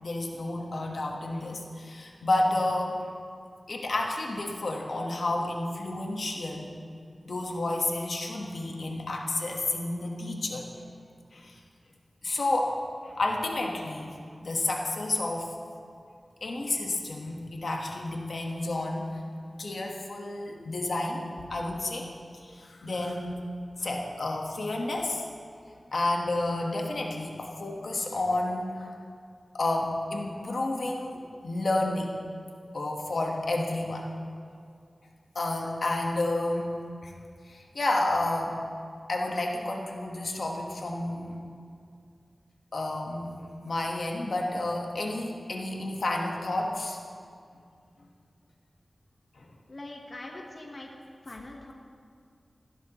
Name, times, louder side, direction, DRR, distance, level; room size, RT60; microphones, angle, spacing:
voice 1, 0.0-3.0 3.7-6.7 7.2-10.7 11.3-11.6 12.2-12.8 13.0-14.1 14.4-15.5 16.4-19.1 19.6-22.1 22.4-23.5 23.8-25.2 25.9-28.9 29.5-32.2 32.7-34.0 35.3-36.7 37.0-37.1 37.5-38.6 39.1-41.4 42.7-43.3 43.6-47.0 49.4-49.5, left 2 dB, 75° left, 0 dB, 1.3 m, -30 dB
voice 2, 49.7-50.9 51.2-51.7, left 2 dB, 45° left, 0 dB, 1.2 m, -42 dB
15.0 x 12.5 x 3.0 m, 2.3 s
wide cardioid pair, 90°, 0 cm